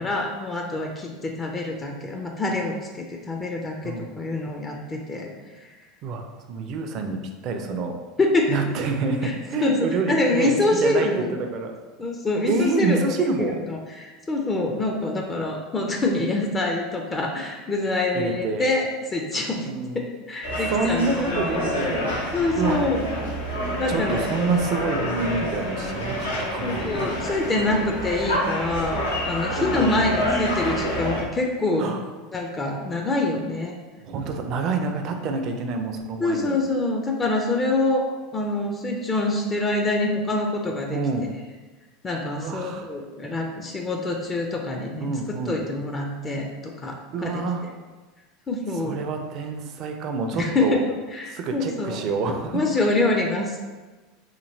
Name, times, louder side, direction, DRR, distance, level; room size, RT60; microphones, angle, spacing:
voice 1, 0.0-5.6 8.2-8.6 9.2-9.3 9.6-11.4 12.0-19.7 19.9-21.6 22.3-23.1 23.8-24.2 26.6-31.8 32.3-33.8 36.2-38.1 38.3-41.0 42.0-46.5 46.8-47.7 48.5-49.0 50.3-50.8 51.1-52.0 52.5-53.6, left 2 dB, 25° left, 1 dB, 0.4 m, -25 dB
voice 2, 6.0-7.2 7.4-8.0 8.5-11.8 12.5-13.6 18.1-18.7 19.7-20.1 20.7-22.1 22.6-22.8 23.9-26.8 29.6-30.0 31.8-32.0 34.0-36.6 40.9-41.3 42.4-42.9 45.0-45.6 47.1-47.6 48.8-50.8 51.3-52.6, right 4 dB, 50° right, 5 dB, 0.4 m, -27 dB
sound 1, 20.4-31.2, equal, 90° left, 0.7 m, -28 dB
2.9 x 2.8 x 2.7 m, 1.3 s
hypercardioid pair, 85°, 0 cm